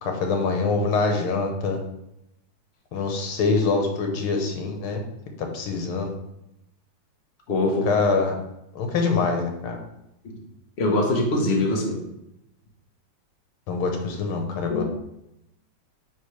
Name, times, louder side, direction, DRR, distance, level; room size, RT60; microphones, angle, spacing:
voice 1, 0.0-1.8 2.9-5.0 5.5-6.1 7.7-8.4 8.8-9.8 13.7-14.8, left 4 dB, 85° left, 3 dB, 1.9 m, -24 dB
voice 2, 7.5-7.9 10.2-10.4 10.8-12.0 14.7-14.8, left 2 dB, 40° left, 0 dB, 1.1 m, -23 dB
9.2 x 3.4 x 3.2 m, 0.84 s
omnidirectional pair, 2.3 m